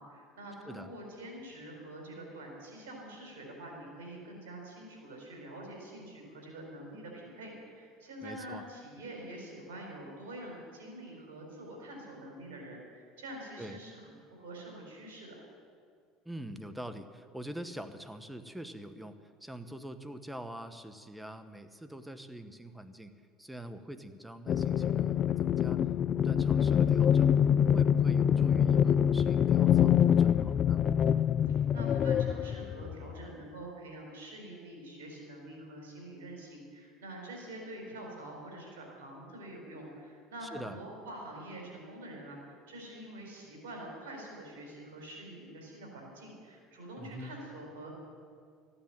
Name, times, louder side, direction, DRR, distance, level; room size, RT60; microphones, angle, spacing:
voice 1, 0.0-15.4 31.4-47.9, right 1 dB, 85° right, 0 dB, 4.5 m, -46 dB
voice 2, 8.2-8.6 13.6-13.8 16.2-23.1 23.4-27.3 27.7-30.8 40.4-40.8 47.0-47.4, right 1 dB, 5° right, 10 dB, 1.1 m, -44 dB
sound 1, 24.5-33.2, left 9 dB, 45° left, 0.3 m, -25 dB
14.5 x 9.8 x 9.2 m, 2.3 s
supercardioid pair, 90°, 0 cm